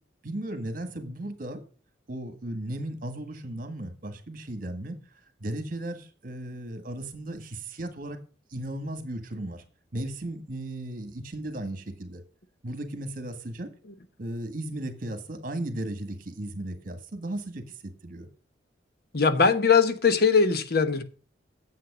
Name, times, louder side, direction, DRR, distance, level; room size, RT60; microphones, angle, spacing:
voice 1, 0.2-1.6 2.1-5.0 5.4-8.2 8.5-9.6 9.9-12.2 12.6-13.7 14.2-17.7 18.0-18.3, right 1 dB, 45° right, 1.7 m, -35 dB
voice 2, 19.1-21.0, left 5 dB, 55° left, 1.0 m, -21 dB
9.2 x 7.7 x 6.0 m
head